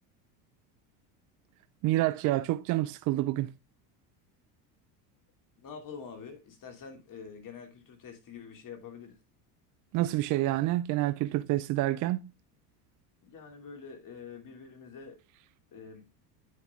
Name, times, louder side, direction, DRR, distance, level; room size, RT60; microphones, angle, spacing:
voice 1, 1.8-3.5 9.9-12.3, right 16 dB, 40° right, 0.4 m, -28 dB
voice 2, 5.6-9.2 13.2-15.2 15.7-16.1, left 6 dB, 40° left, 2.8 m, -46 dB
9.5 x 5.4 x 3.6 m
hypercardioid pair, 95°, 49 cm